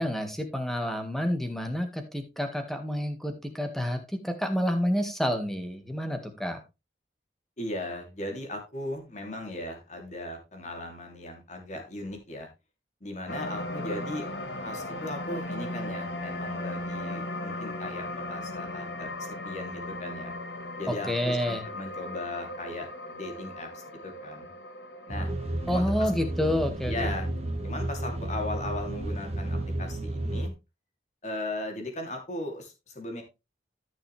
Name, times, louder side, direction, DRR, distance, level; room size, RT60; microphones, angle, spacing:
voice 1, 0.0-4.0 4.2-6.6 20.9-21.6 25.7-27.1, equal, ahead, 6 dB, 1.7 m, -29 dB
voice 2, 7.6-12.5 13.0-14.3 14.6-20.3 20.8-23.7 24.0-24.5 25.1-25.3 25.7-26.1 26.9-27.3 27.6-30.5 31.2-33.2, left 1 dB, 40° left, 3 dB, 3.1 m, -37 dB
sound 1, 13.3-29.7 30.2-30.3, left 1 dB, 80° left, 1.6 m, -38 dB
sound 2, 25.1-30.5, right 1 dB, 35° right, 1.1 m, -32 dB
14.0 x 6.3 x 3.3 m, 0.25 s
head